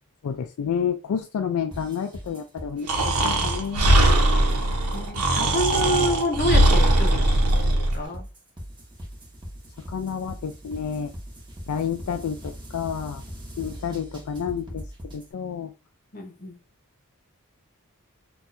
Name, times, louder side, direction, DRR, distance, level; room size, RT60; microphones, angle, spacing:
voice 1, 0.2-4.0 7.5-7.9 9.9-11.1 11.7-13.2 13.6-14.9 15.1-15.7, left 7 dB, 70° left, 6 dB, 0.3 m, -30 dB
sound 1, 1.7-15.3, equal, 20° right, 1.0 m, -40 dB
Breathing, 2.9-8.0, right 1 dB, 90° right, 0.8 m, -20 dB
voice 2, 4.9-8.2 16.1-16.6, equal, 40° left, 2 dB, 0.8 m, -28 dB
2.6 x 2.4 x 4.1 m, 0.31 s
head